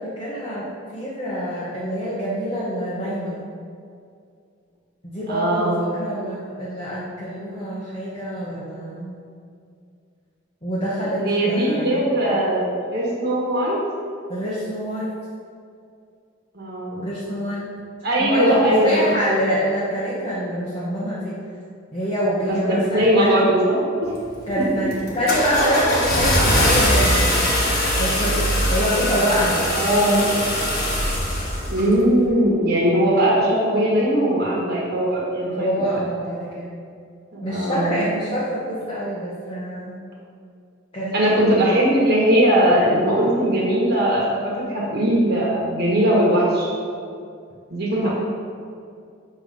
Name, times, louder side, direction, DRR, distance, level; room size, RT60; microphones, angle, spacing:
voice 1, 0.0-3.4 5.0-9.2 10.6-12.0 14.3-15.1 17.0-17.7 18.2-21.4 21.9-23.4 24.5-27.5 28.0-28.4 28.7-29.7 35.4-36.7 37.4-40.0 40.9-41.3 48.0-48.1, equal, 25° left, -9 dB, 1.1 m, -25 dB
voice 2, 5.3-5.8 11.2-13.8 16.5-17.0 18.0-19.4 22.4-23.8 24.6-24.8 26.1-26.6 29.7-30.2 31.7-35.8 37.3-38.0 41.1-46.7 47.7-48.1, right 1 dB, 55° right, -5 dB, 1.4 m, -20 dB
Car / Engine starting, 24.1-24.5 24.9-31.9, equal, 50° left, 1.4 m, -21 dB
7.4 x 3.4 x 5.1 m, 2.3 s
head